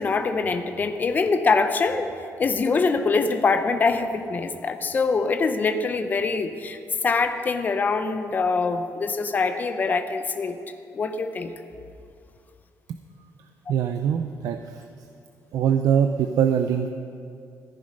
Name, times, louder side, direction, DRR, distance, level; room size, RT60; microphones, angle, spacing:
voice 1, 0.0-2.1 2.4-10.6 10.9-11.5, left 4 dB, 30° left, 8 dB, 0.7 m, -24 dB
voice 2, 13.7-14.8 15.5-16.9, right 8 dB, 70° right, 7 dB, 0.5 m, -23 dB
14.5 x 10.0 x 5.3 m, 2.4 s
cardioid pair, 170°, 6 cm